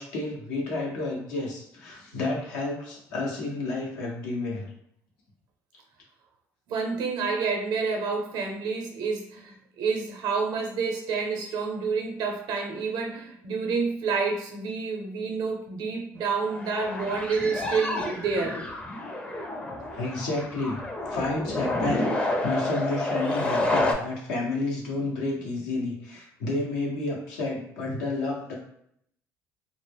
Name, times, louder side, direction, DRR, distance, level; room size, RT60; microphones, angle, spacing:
voice 1, 0.0-4.7 19.9-20.8 21.0-28.5, left 2 dB, 85° left, -2 dB, 0.7 m, -30 dB
voice 2, 6.7-18.6, right 4 dB, 65° right, 1 dB, 0.6 m, -29 dB
sound 1, 16.4-23.9, left 2 dB, 15° left, 0.5 m, -29 dB
2.1 x 2.0 x 3.3 m, 0.69 s
hypercardioid pair, 65°, 7 cm